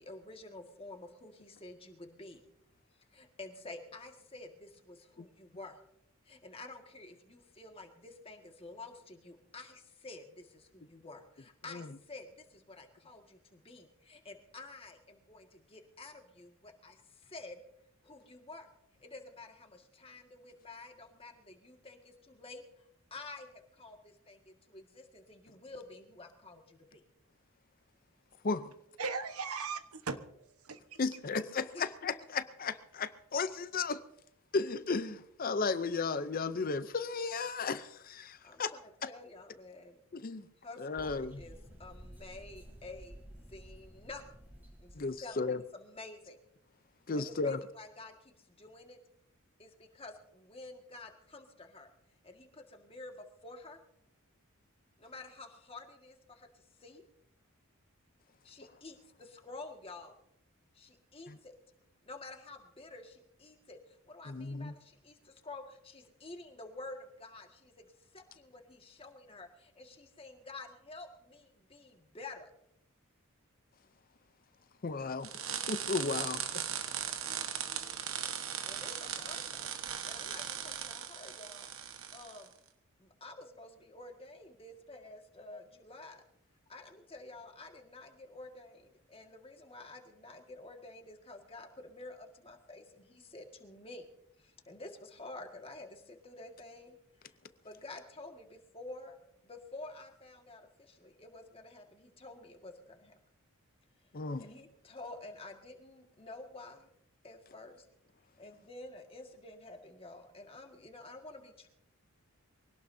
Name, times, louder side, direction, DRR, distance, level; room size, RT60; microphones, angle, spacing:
voice 1, 0.0-2.4 3.1-5.8 6.3-17.6 18.0-18.7 19.0-27.0 31.7-31.8 38.4-40.0 40.6-44.2 44.8-46.4 47.2-49.0 49.6-51.9 52.2-53.8 55.0-57.0 58.4-60.1 60.7-61.6 62.0-72.5 78.7-79.8 80.0-81.7 82.1-82.5 83.0-86.2 86.7-94.1 94.4-97.4 97.6-103.1 104.4-106.9 107.2-107.9 108.4-111.7, left 2 dB, 25° left, 1.8 m, -50 dB
voice 2, 29.0-31.0, right 4 dB, 85° right, 1.2 m, -38 dB
voice 3, 31.0-34.0 34.5-38.7 40.1-40.5 40.8-41.4 45.0-45.6 47.1-47.6 61.3-61.4 64.3-64.7 74.8-75.3 75.7-76.4 104.1-104.4, left 4 dB, 40° left, 0.6 m, -34 dB
sound 1, 40.9-45.3, equal, 10° right, 3.5 m, -52 dB
sound 2, 75.2-82.5, right 9 dB, 65° right, 1.3 m, -38 dB
23.5 x 18.0 x 2.7 m
head